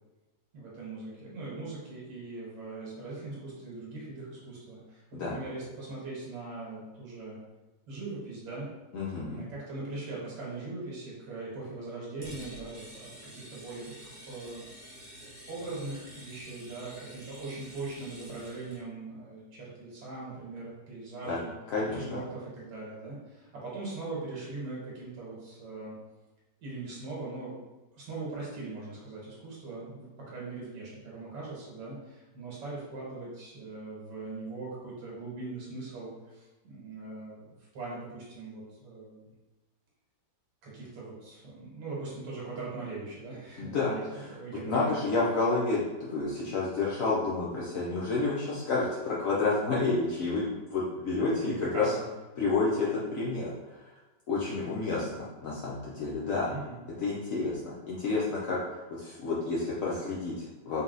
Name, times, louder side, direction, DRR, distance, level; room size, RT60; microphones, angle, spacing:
voice 1, 0.5-7.4 7.9-8.7 9.2-15.0 15.5-21.5 21.8-26.0 26.6-27.6 27.9-39.3 40.6-45.0 51.4-52.1 53.0-53.2 56.5-56.8, right 3 dB, 75° right, -6 dB, 1.9 m, -41 dB
voice 2, 8.9-9.4 21.2-21.4 21.7-22.2 43.6-44.2 44.7-51.9 52.4-53.9 54.3-56.5 57.0-60.8, left 3 dB, 65° left, -6 dB, 0.9 m, -30 dB
sound 1, 12.2-18.8, right 1 dB, 25° right, 0.9 m, -49 dB
4.1 x 2.3 x 3.8 m, 1.1 s
omnidirectional pair, 1.9 m